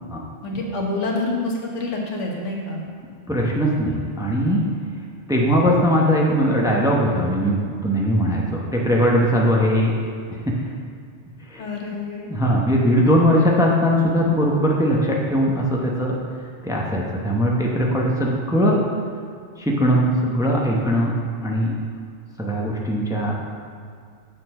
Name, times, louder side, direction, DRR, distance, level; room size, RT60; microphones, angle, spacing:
voice 1, 0.4-2.8 11.6-12.3 13.4-13.5, left 2 dB, 90° left, -2 dB, 1.5 m, -27 dB
voice 2, 3.3-4.6 5.3-7.6 7.8-9.9 11.5-11.6 12.3-16.1 16.6-18.8 19.6-21.1 21.4-21.7 22.4-23.3, equal, 5° right, -2 dB, 0.7 m, -20 dB
7.1 x 4.2 x 6.5 m, 2.2 s
omnidirectional pair, 1.2 m